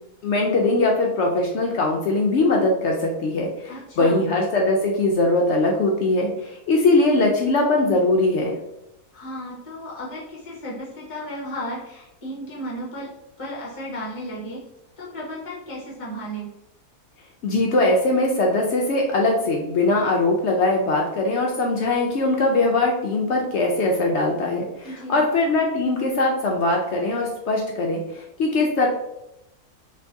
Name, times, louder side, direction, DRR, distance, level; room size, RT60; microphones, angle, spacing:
voice 1, 0.2-8.5 17.4-28.9, left 2 dB, 70° left, 0 dB, 0.6 m, -21 dB
voice 2, 3.7-4.2 9.1-13.1 13.4-14.6 15.0-16.5 24.8-25.3, equal, 30° left, -4 dB, 0.6 m, -34 dB
3.1 x 2.6 x 3.4 m, 0.88 s
omnidirectional pair, 1.6 m